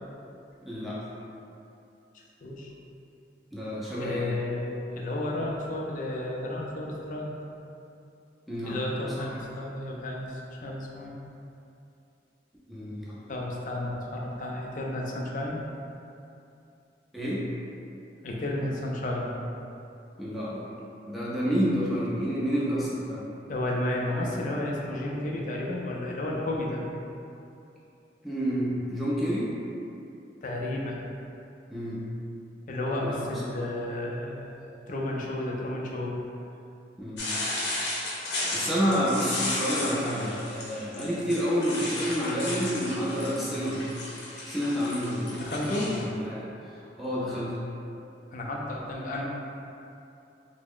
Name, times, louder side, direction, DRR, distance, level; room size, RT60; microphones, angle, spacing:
voice 1, 0.6-1.0 3.5-4.3 8.5-9.3 12.7-13.2 17.1-17.4 20.2-20.7 21.1-23.2 28.2-29.5 31.7-32.0 33.0-33.6 37.0-37.4 38.5-43.9 44.5-45.4 45.8-46.5 47.0-47.5, equal, ahead, -9 dB, 0.5 m, -29 dB
voice 2, 2.1-2.7 3.9-7.3 8.6-11.1 13.3-15.6 18.2-19.4 23.5-26.8 30.4-31.0 32.7-34.6 34.9-36.2 45.4-45.9 48.3-49.2, left 1 dB, 45° left, -2 dB, 0.4 m, -32 dB
sound 1, 37.2-46.0, left 2 dB, 80° left, 0.7 m, -34 dB
3.4 x 2.0 x 3.7 m, 2.7 s
head